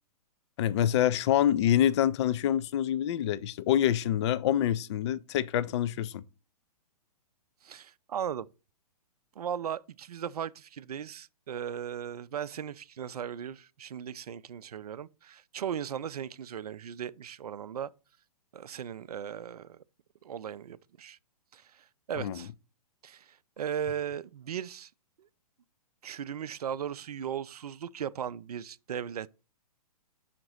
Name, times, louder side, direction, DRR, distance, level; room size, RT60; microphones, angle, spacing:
voice 1, 0.6-6.2 22.2-22.4, left 11 dB, 45° left, 0.4 m, -26 dB
voice 2, 7.6-8.5 9.4-17.9 18.5-19.8 20.2-21.2 21.5-22.5 23.0-24.9 25.2-25.3 26.0-29.3, right 9 dB, 75° right, 0.4 m, -37 dB
5.8 x 3.9 x 6.1 m
figure-of-eight pair, 120°, 20 cm